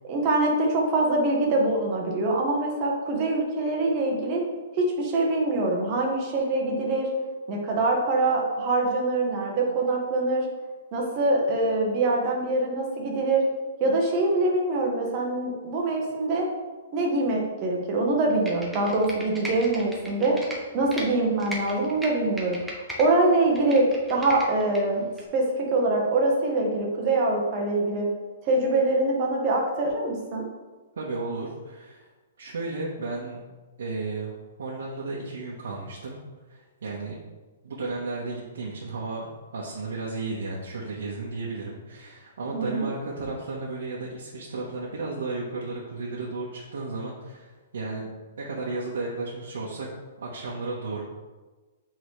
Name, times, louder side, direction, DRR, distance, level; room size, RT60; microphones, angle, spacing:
voice 1, 0.0-4.4 4.8-7.1 7.5-10.5 10.9-13.4 13.8-16.5 16.9-20.4 20.7-25.1 25.3-28.1 28.4-30.4 42.5-42.9, right 2 dB, 25° right, -1 dB, 1.0 m, -24 dB
Computer keyboard, 18.3-21.0 21.4-23.1 23.4-24.8 25.2-25.3, equal, 5° right, 0.6 m, -37 dB
voice 2, 31.0-32.1 32.4-33.4 33.8-36.2 36.5-37.2 37.6-39.3 39.5-48.1 48.4-49.9 50.2-51.0, right 3 dB, 85° right, -5 dB, 1.2 m, -34 dB
7.8 x 3.9 x 3.3 m, 1.3 s
hypercardioid pair, 175°, 0 cm